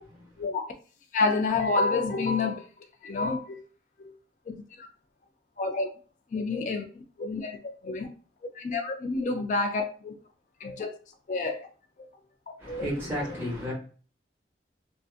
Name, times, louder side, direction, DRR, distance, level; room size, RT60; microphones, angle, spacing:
voice 1, 1.1-2.6 3.0-3.6 4.0-4.1 4.5-4.9 5.6-5.9 6.3-7.6 7.8-8.1 8.5-10.1 10.6-10.9 11.3-11.7 12.0-12.1 12.7-13.4, left 3 dB, 45° left, 0.3 m, -29 dB
voice 2, 12.6-13.7, equal, 15° right, 1.1 m, -32 dB
2.5 x 2.4 x 2.3 m
head